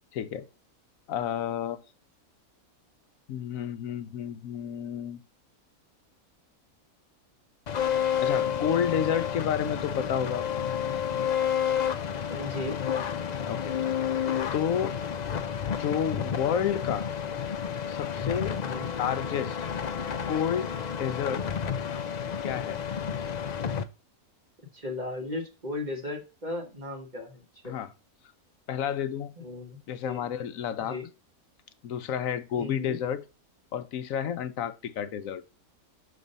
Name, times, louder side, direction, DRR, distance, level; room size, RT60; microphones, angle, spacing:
voice 1, 0.1-0.5 1.1-1.8 3.3-5.2 8.2-10.5 13.4-13.8 14.5-14.9 15.7-17.1 17.9-19.6 20.3-20.7 21.0-21.5 22.4-22.8 27.6-27.9 28.7-29.3 29.9-31.0 31.8-33.2 33.7-35.4, left 8 dB, 70° left, 1.1 m, -30 dB
sound 1, 7.7-23.8, left 8 dB, 90° left, 0.3 m, -30 dB
voice 2, 12.3-12.8 18.6-18.9 24.7-27.8 29.4-30.2 30.9-31.1 32.6-33.0, left 2 dB, 30° right, 1.5 m, -36 dB
6.5 x 3.3 x 5.4 m
omnidirectional pair, 1.5 m